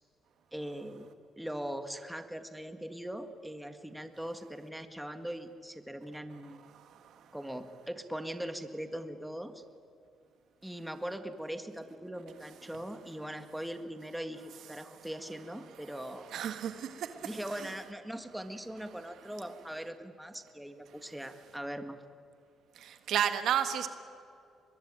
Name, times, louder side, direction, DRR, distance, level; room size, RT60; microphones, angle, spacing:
voice 1, 0.5-1.1 1.4-6.6 7.3-9.6 10.6-16.3 17.2-22.0, right 1 dB, 5° right, 8 dB, 1.9 m, -41 dB
voice 2, 16.3-17.3 17.6-17.7 22.8-23.9, right 9 dB, 75° right, 9 dB, 1.6 m, -32 dB
23.5 x 21.5 x 9.0 m, 2.4 s
cardioid pair, 90°, 0 cm